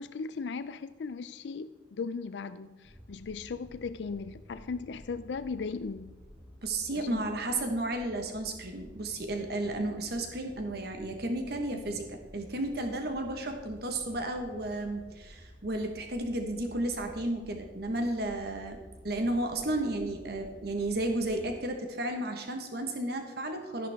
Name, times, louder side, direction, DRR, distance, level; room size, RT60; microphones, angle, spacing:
voice 1, 0.0-6.2 7.0-7.2 7.5-7.7 11.7-11.8, left 4 dB, 70° left, 13 dB, 0.4 m, -37 dB
sound 1, 2.8-21.6, equal, 5° right, 1.2 m, -52 dB
voice 2, 6.6-18.8 19.0-23.9, right 1 dB, 60° right, 4 dB, 1.3 m, -33 dB
13.0 x 10.5 x 3.5 m, 1.3 s
head